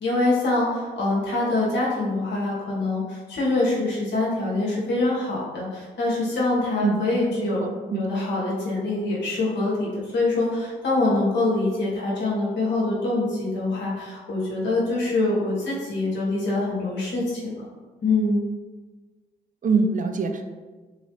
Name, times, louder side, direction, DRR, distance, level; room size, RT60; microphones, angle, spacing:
voice 1, 0.0-7.6 8.0-17.6 18.0-18.4, left 2 dB, 60° left, -6 dB, 1.2 m, -24 dB
voice 2, 7.6-8.1 19.6-20.5, right 4 dB, 40° right, 6 dB, 0.5 m, -24 dB
4.0 x 3.1 x 3.0 m, 1.3 s
hypercardioid pair, 45°, 20 cm